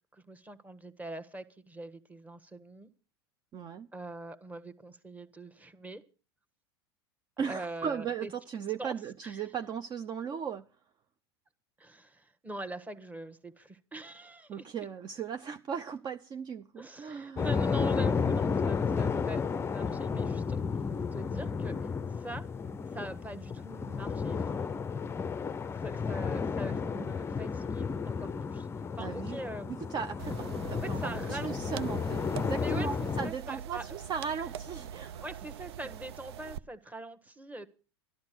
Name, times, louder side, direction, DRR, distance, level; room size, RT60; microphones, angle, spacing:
voice 1, 0.1-2.9 3.9-6.0 7.5-8.3 8.8-8.9 9.2-9.4 11.8-14.6 16.8-22.5 22.9-24.8 25.8-28.7 29.0-29.7 30.8-31.8 32.6-34.0 35.0-37.7, right 2 dB, 10° right, 1.4 m, -43 dB
voice 2, 3.5-3.9 7.4-10.6 14.5-17.5 29.0-29.4 29.7-35.3, right 7 dB, 30° right, 0.7 m, -37 dB
sound 1, 17.4-33.3, left 5 dB, 20° left, 0.6 m, -32 dB
sound 2, 30.2-36.6, right 9 dB, 75° right, 0.6 m, -43 dB
12.5 x 12.0 x 6.0 m
hypercardioid pair, 95°, 14 cm